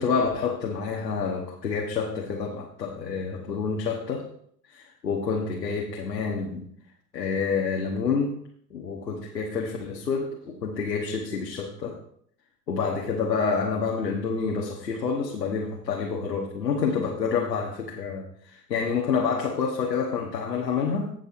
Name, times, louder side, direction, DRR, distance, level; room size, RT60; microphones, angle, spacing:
voice 1, 0.0-4.3 4.7-6.7 7.1-8.3 8.7-12.0 12.7-21.1, left 5 dB, 80° left, -1 dB, 1.3 m, -28 dB
16.0 x 6.6 x 2.6 m, 0.63 s
figure-of-eight pair, 85°, 49 cm